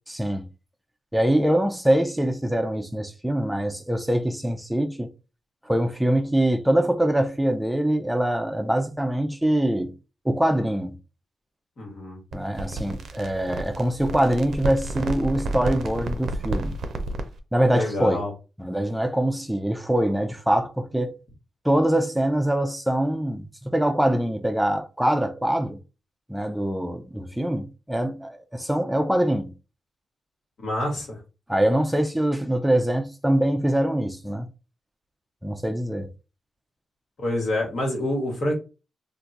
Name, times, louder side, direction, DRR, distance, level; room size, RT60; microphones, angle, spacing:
voice 1, 0.1-0.5 1.1-5.1 5.7-9.9 10.2-10.9 12.3-16.7 17.5-18.2 18.6-21.1 21.6-25.8 26.3-29.5 31.5-34.5 35.4-36.1, right 1 dB, 5° right, 0.5 m, -23 dB
voice 2, 11.8-12.2 17.7-18.3 30.6-31.2 37.2-38.5, left 1 dB, 65° left, 1.5 m, -27 dB
sound 1, 12.3-17.4, right 2 dB, 70° right, 0.5 m, -31 dB
2.6 x 2.3 x 4.1 m
cardioid pair, 55°, 0 cm